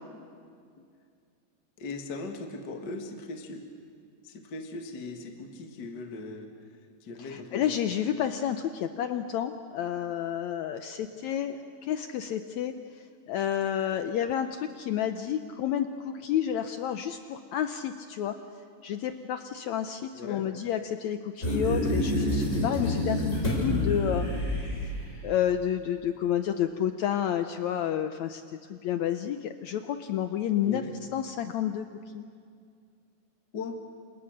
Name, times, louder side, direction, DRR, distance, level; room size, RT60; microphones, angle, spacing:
voice 1, 1.8-3.7 4.2-6.5 7.0-7.7 20.2-20.5 30.6-30.9 33.5-33.8, left 3 dB, 40° left, 4 dB, 1.9 m, -39 dB
voice 2, 7.2-12.7 13.3-18.4 18.8-24.3 25.2-28.4 28.7-30.8 31.1-31.9 32.1-32.3, left 10 dB, 70° left, 9 dB, 1.9 m, -30 dB
sound 1, 21.4-25.1, left 1 dB, 20° left, 7.3 m, -28 dB
29.5 x 27.0 x 6.6 m, 2.3 s
omnidirectional pair, 3.7 m